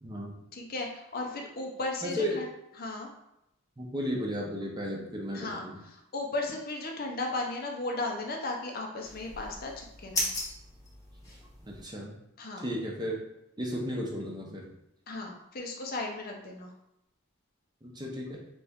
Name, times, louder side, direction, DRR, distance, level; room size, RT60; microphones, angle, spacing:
voice 1, 0.0-0.4 2.0-2.4 3.8-5.8 11.6-12.1 12.6-13.2 13.6-14.7 17.8-18.4, equal, 20° right, -2 dB, 0.7 m, -34 dB
voice 2, 0.5-2.4 2.8-3.1 5.3-5.6 6.1-10.3 12.4-12.7 15.1-16.7, left 2 dB, 45° left, 1 dB, 0.6 m, -35 dB
sound 1, 9.0-11.8, left 1 dB, 15° left, 1.0 m, -37 dB
4.1 x 3.4 x 3.5 m, 0.84 s
head